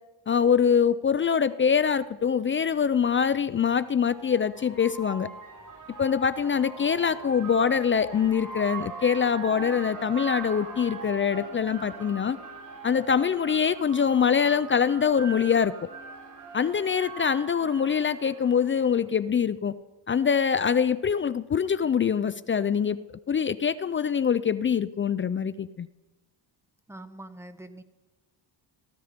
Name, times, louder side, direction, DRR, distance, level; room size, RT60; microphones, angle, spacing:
voice 1, 0.3-5.3 6.0-12.4 12.8-15.9 16.5-19.7 20.1-23.0 23.3-25.9, left 7 dB, 30° left, 15 dB, 0.4 m, -24 dB
sound 1, 1.9-2.0 3.4-19.0, right 4 dB, 40° right, 4.3 m, -41 dB
voice 2, 26.9-27.8, right 1 dB, 5° right, 10 dB, 1.1 m, -43 dB
16.5 x 14.5 x 5.1 m, 1.1 s
cardioid pair, 115°, 45 cm